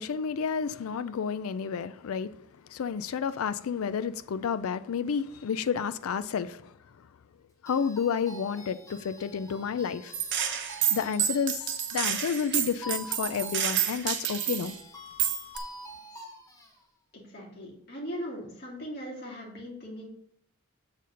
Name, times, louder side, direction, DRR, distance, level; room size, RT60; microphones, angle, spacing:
voice 1, 0.0-2.3 2.7-6.7 7.6-10.1 10.9-11.7 11.9-14.7, left 6 dB, 85° left, 0.4 m, -30 dB
sound 1, 7.7-16.7, equal, 15° left, 1.1 m, -47 dB
Gunshot gunfire, 10.1-14.7 15.2-15.6, right 10 dB, 55° right, 0.8 m, -29 dB
voice 2, 17.1-20.1, equal, 50° left, 2.4 m, -39 dB
6.7 x 4.1 x 6.3 m
head